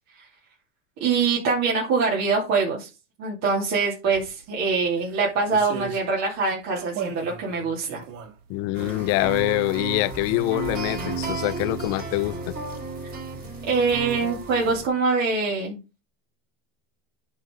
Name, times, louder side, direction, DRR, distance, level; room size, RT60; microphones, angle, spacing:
voice 1, 1.0-2.9 3.2-8.0 13.0-13.1 13.7-15.8, right 4 dB, 45° right, 2.9 m, -24 dB
sound 1, 4.1-4.3 5.0-6.1 6.8-8.9 9.3-9.8 10.1-10.2, right 7 dB, 80° right, 2.3 m, -37 dB
voice 2, 8.5-12.5, left 20 dB, 40° left, 0.4 m, -25 dB
sound 2, 8.7-14.9, right 4 dB, 25° right, 4.2 m, -33 dB
9.5 x 4.2 x 5.1 m
supercardioid pair, 140°, 37 cm